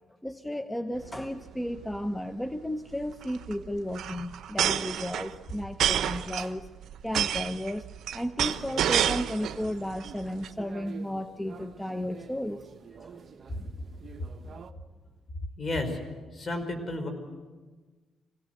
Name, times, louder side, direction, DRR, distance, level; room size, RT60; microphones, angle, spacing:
voice 1, 0.2-6.7 7.0-12.7, left 1 dB, 10° left, 9 dB, 0.9 m, -33 dB
sound 1, 1.0-1.2 1.5-1.6 1.8-2.1 3.0-9.6 10.0-10.5, right 10 dB, 70° right, 0.9 m, -29 dB
sound 2, 8.4-14.7, right 6 dB, 45° right, 1.3 m, -48 dB
voice 2, 15.6-16.0 16.3-17.1, left 2 dB, 40° left, 7 dB, 5.1 m, -32 dB
25.0 x 17.0 x 8.0 m, 1.3 s
cardioid pair, 90°, 0 cm